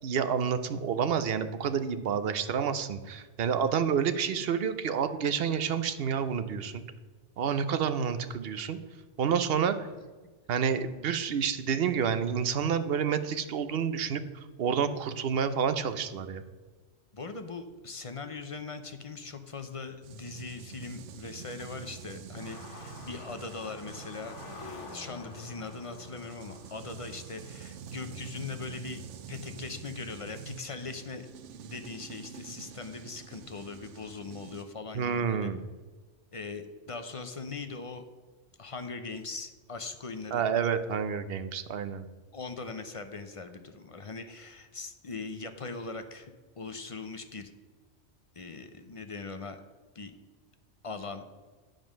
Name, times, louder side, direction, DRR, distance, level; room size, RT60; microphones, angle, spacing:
voice 1, 0.0-6.8 7.4-8.8 9.2-9.8 10.5-16.4 34.9-35.6 40.3-42.1, right 7 dB, 60° right, 11 dB, 0.8 m, -29 dB
voice 2, 17.1-24.3 24.6-29.0 29.3-31.3 31.6-35.5 36.3-38.1 38.6-40.5 42.3-47.5 48.3-49.6 49.9-50.1 50.8-51.3, left 4 dB, 40° left, 8 dB, 0.5 m, -40 dB
sound 1, 20.0-34.7, right 7 dB, 90° right, 1.0 m, -47 dB
sound 2, 22.4-31.5 31.9-32.0 32.4-34.2, left 2 dB, 75° left, 1.5 m, -49 dB
9.1 x 5.2 x 6.2 m, 1.4 s
omnidirectional pair, 1.2 m